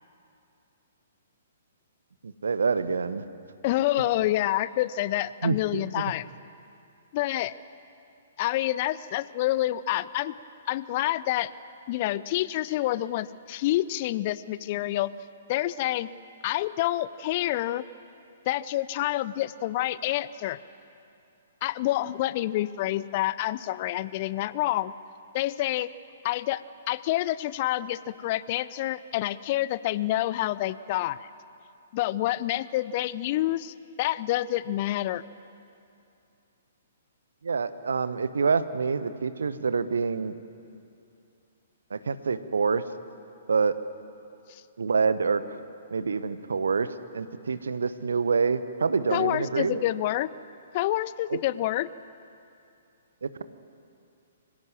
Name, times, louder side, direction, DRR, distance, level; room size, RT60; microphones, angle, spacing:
voice 1, 2.2-3.2 5.4-6.1 37.4-40.3 41.9-42.8 43.5-43.7 44.8-45.6 45.9-46.9 47.1-49.8 51.3-51.4 53.2-53.4, right 5 dB, 65° right, 13 dB, 1.0 m, -26 dB
voice 2, 3.6-6.3 7.1-7.5 8.4-10.3 10.7-11.5 11.9-15.1 15.5-16.1 16.4-17.8 18.5-20.6 21.6-24.9 25.3-25.9 26.2-26.6 26.9-31.2 31.9-35.2 44.5-44.6 49.1-50.3 50.7-51.9, left 15 dB, 40° left, 17 dB, 0.6 m, -28 dB
25.5 x 16.5 x 7.6 m, 2.6 s
figure-of-eight pair, 120°, 0 cm